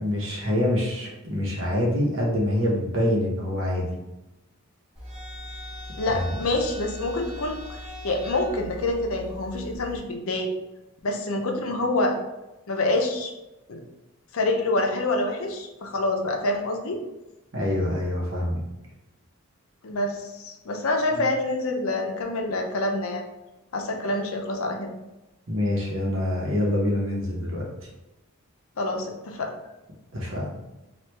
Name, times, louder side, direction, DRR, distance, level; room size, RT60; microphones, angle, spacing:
voice 1, 0.0-3.9 6.1-6.3 17.5-18.6 21.1-21.3 25.5-27.7 30.1-30.5, left 1 dB, 60° right, -3 dB, 0.9 m, -25 dB
sound 1, 5.0-10.0, equal, 25° right, 1.1 m, -39 dB
voice 2, 6.0-7.6 8.0-10.5 11.0-12.2 12.7-13.3 13.7-13.8 14.3-17.0 19.8-23.2 23.7-24.9 28.8-29.5, left 2 dB, 75° left, 2 dB, 0.5 m, -26 dB
3.0 x 2.4 x 3.3 m, 1.0 s
head